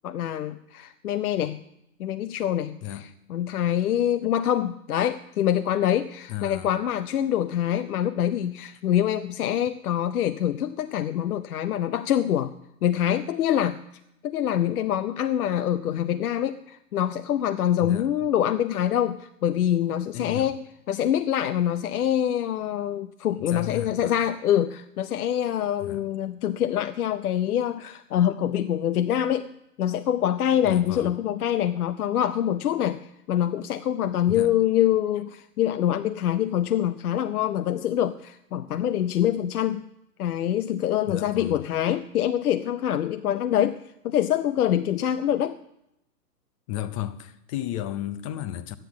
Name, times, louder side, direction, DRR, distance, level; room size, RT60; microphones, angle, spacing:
voice 1, 0.0-1.6 2.0-12.5 12.8-13.8 14.2-29.5 29.8-39.9 40.2-43.8 44.0-45.6, left 10 dB, 65° left, 0.7 m, -25 dB
voice 2, 6.3-6.7 17.8-18.1 20.1-20.5 23.4-24.2 25.8-26.0 30.6-31.1 34.3-34.5 41.1-41.6 46.7-48.8, left 12 dB, 20° left, 0.6 m, -34 dB
12.5 x 9.8 x 7.1 m
hypercardioid pair, 125°, 49 cm